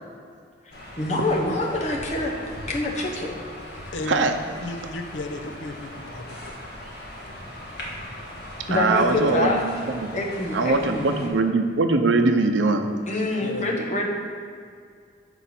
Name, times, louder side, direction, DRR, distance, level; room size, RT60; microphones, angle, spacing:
sound 1, 0.7-11.3, left 1 dB, 55° left, 1.5 m, -39 dB
voice 1, 1.0-2.3 2.7-3.3 3.7-3.9 8.7-9.6 10.1-11.2 13.1-14.1, left 2 dB, 40° left, -1 dB, 1.0 m, -26 dB
voice 2, 3.9-6.6 13.4-13.7, left 2 dB, 80° left, 6 dB, 0.6 m, -34 dB
voice 3, 8.7-10.2 10.5-12.9, right 3 dB, 85° right, 6 dB, 0.6 m, -22 dB
6.8 x 4.5 x 5.8 m, 2.2 s
head